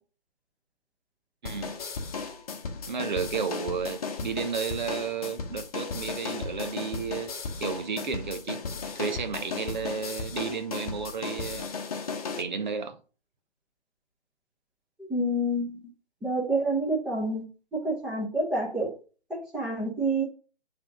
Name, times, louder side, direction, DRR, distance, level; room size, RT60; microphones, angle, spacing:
voice 1, 1.4-1.8 2.9-7.3 7.6-8.6 8.9-11.7 12.4-13.0, right 6 dB, 45° right, 1.1 m, -32 dB
sound 1, 1.5-12.4, left 4 dB, 35° left, 1.1 m, -35 dB
voice 2, 15.0-15.9 16.2-18.9 19.3-20.2, right 1 dB, ahead, 1.0 m, -28 dB
8.6 x 3.8 x 5.1 m
figure-of-eight pair, 145°, 33 cm